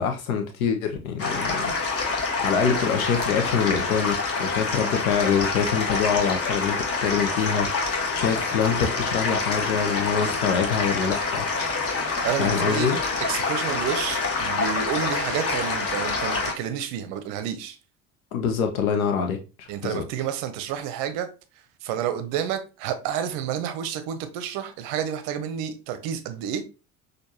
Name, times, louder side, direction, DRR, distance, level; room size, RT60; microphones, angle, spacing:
voice 1, 0.0-1.7 2.4-11.5 12.4-13.0 18.3-20.0, left 7 dB, 65° left, 0.8 m, -25 dB
sound 1, 1.2-16.5, left 4 dB, 30° left, 1.4 m, -26 dB
voice 2, 12.2-12.9 13.2-17.8 19.7-21.3 21.8-26.6, right 9 dB, 50° right, 0.7 m, -30 dB
6.3 x 2.5 x 2.8 m
figure-of-eight pair, 60°, 45 cm